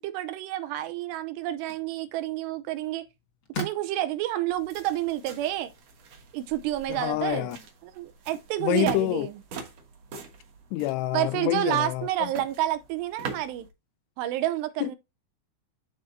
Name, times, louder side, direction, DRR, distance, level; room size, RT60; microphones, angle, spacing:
voice 1, 0.0-3.1 3.6-5.7 6.3-9.4 11.1-13.7 14.2-15.0, right 14 dB, 80° right, 2.8 m, -29 dB
sound 1, 0.7-6.9, left 2 dB, 55° left, 1.3 m, -44 dB
sound 2, 4.5-13.7, right 4 dB, 60° right, 1.7 m, -42 dB
voice 2, 6.9-7.6 8.6-9.3 10.7-12.3 14.8-15.0, left 17 dB, 85° left, 2.5 m, -27 dB
12.0 x 4.3 x 2.6 m
omnidirectional pair, 5.1 m